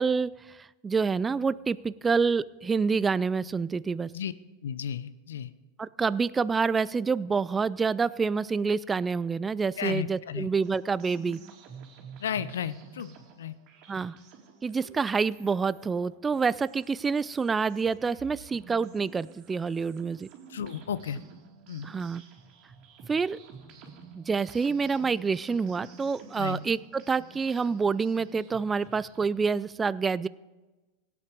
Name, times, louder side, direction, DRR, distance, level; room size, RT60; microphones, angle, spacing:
voice 1, 0.0-4.1 5.8-11.4 13.9-14.2 14.6-20.3 21.8-22.2 23.1-23.4 24.1-30.3, right 5 dB, 20° right, 18 dB, 0.3 m, -27 dB
voice 2, 4.6-5.5 9.8-10.5 12.2-13.1 13.4-13.5 20.5-21.2 21.7-21.9 26.4-26.6, left 8 dB, 80° left, 16 dB, 0.6 m, -33 dB
sound 1, 10.6-29.5, right 5 dB, 50° right, 2.9 m, -51 dB
17.0 x 8.6 x 5.2 m, 1.1 s
hypercardioid pair, 100°, 0 cm